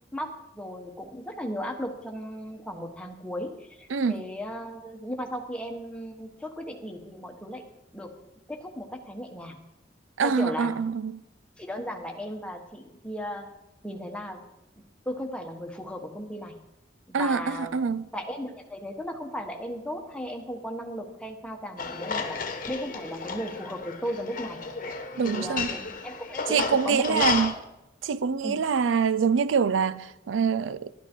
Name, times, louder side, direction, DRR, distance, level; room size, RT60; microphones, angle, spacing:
voice 1, 0.1-7.6 7.9-8.1 8.5-9.6 10.2-10.7 11.6-13.5 13.8-14.4 15.0-16.6 17.1-22.4 22.7-24.6 25.2-27.4 28.4-28.6, equal, 5° left, 1.3 m, -36 dB
voice 2, 3.9-4.2 10.2-11.2 17.1-18.1 25.2-25.7 26.5-27.5 28.0-30.9, right 6 dB, 90° right, 0.5 m, -25 dB
sound 1, 21.8-27.5, left 5 dB, 45° left, 1.1 m, -33 dB
12.0 x 11.5 x 4.5 m
head